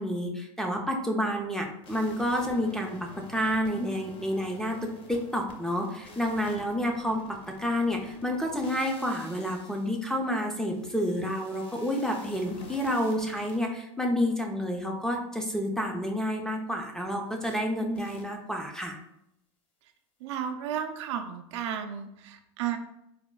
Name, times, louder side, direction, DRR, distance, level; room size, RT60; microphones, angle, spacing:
voice 1, 0.0-7.2 7.6-19.0, equal, 5° left, 2 dB, 0.3 m, -29 dB
sound 1, 1.8-13.6 17.4-17.6 17.9-18.2, left 2 dB, 35° left, 0.6 m, -49 dB
voice 2, 20.2-22.8, right 9 dB, 75° right, 6 dB, 0.4 m, -33 dB
4.1 x 2.0 x 2.2 m, 0.80 s
supercardioid pair, 125°, 15 cm